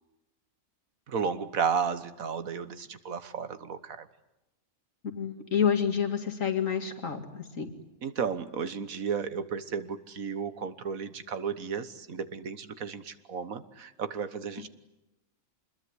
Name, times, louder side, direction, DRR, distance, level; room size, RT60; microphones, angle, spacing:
voice 1, 1.1-4.1 8.0-14.7, right 6 dB, 80° right, 12 dB, 1.7 m, -33 dB
voice 2, 5.1-7.7, left 7 dB, 70° left, 5 dB, 2.6 m, -28 dB
25.5 x 21.5 x 9.7 m, 0.94 s
omnidirectional pair, 1.4 m